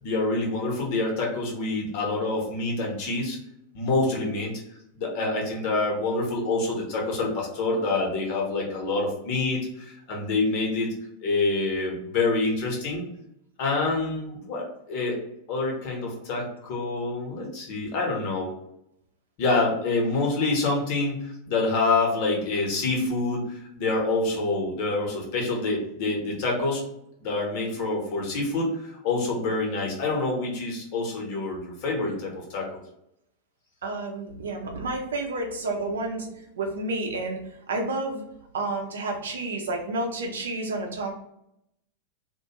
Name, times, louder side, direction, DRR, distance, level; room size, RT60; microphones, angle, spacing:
voice 1, 0.0-3.4 3.7-4.6 4.9-10.9 11.2-13.1 13.6-15.2 15.5-18.5 19.4-26.8 27.2-32.8, left 3 dB, 45° left, -1 dB, 0.9 m, -27 dB
voice 2, 33.8-36.3 36.6-37.4 37.7-38.2 38.5-41.1, right 2 dB, 65° right, 1 dB, 0.6 m, -30 dB
2.4 x 2.2 x 2.9 m, 0.78 s
figure-of-eight pair, 90°, 0 cm